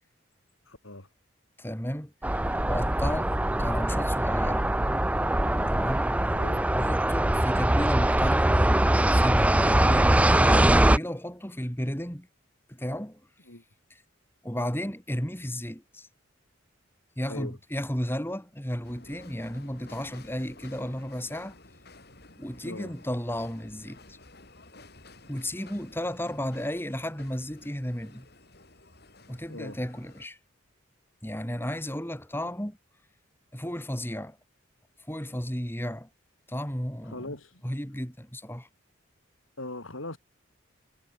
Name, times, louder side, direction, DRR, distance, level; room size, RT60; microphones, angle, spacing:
voice 1, 0.7-1.1 6.3-6.6 13.5-13.6 17.3-17.6 22.6-22.9 29.5-29.8 37.1-37.6 39.6-40.2, left 2 dB, 80° left, 5.5 m, -40 dB
voice 2, 1.6-2.1 2.6-3.3 3.6-4.7 5.7-6.1 6.7-8.6 9.1-12.3 12.7-13.2 13.9-14.0 14.4-16.1 17.2-21.6 22.4-24.2 25.3-28.3 29.3-30.4 31.2-32.8 33.5-34.4 35.1-36.1 36.5-37.4 37.6-38.7, equal, 10° left, 4.3 m, -33 dB
sound 1, 2.2-11.0, right 1 dB, 5° right, 0.5 m, -22 dB
sound 2, 18.8-30.3, left 2 dB, 50° left, 4.8 m, -52 dB
head